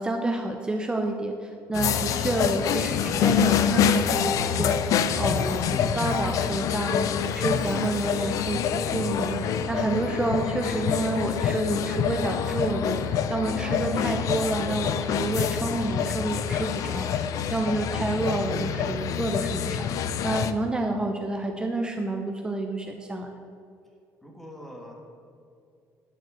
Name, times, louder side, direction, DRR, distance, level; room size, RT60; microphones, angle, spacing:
voice 1, 0.0-7.1 7.3-23.3, right 2 dB, 15° right, 3 dB, 0.7 m, -29 dB
sound 1, 1.7-20.5, left 8 dB, 65° left, 0.5 m, -26 dB
voice 2, 24.2-24.9, equal, 5° left, -1 dB, 1.5 m, -43 dB
9.9 x 4.7 x 7.7 m, 2.4 s
cardioid pair, 125°, 6 cm